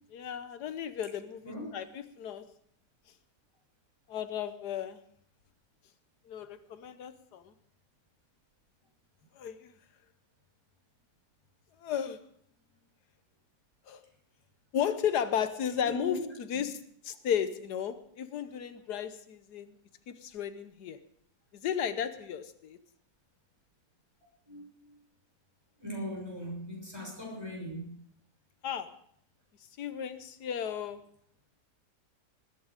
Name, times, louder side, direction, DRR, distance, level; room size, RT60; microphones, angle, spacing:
voice 1, 0.1-2.4 4.1-5.0 6.3-7.5 9.4-9.7 11.8-12.2 13.9-14.0 14.7-16.7 17.0-19.7 20.1-21.0 21.5-22.8 28.6-28.9 29.8-31.0, left 8 dB, 85° left, 11 dB, 1.5 m, -34 dB
voice 2, 1.4-1.8 15.8-16.3 24.5-24.9 25.8-28.0, equal, 15° right, -2 dB, 6.2 m, -39 dB
20.0 x 10.0 x 5.1 m, 0.65 s
omnidirectional pair, 1.7 m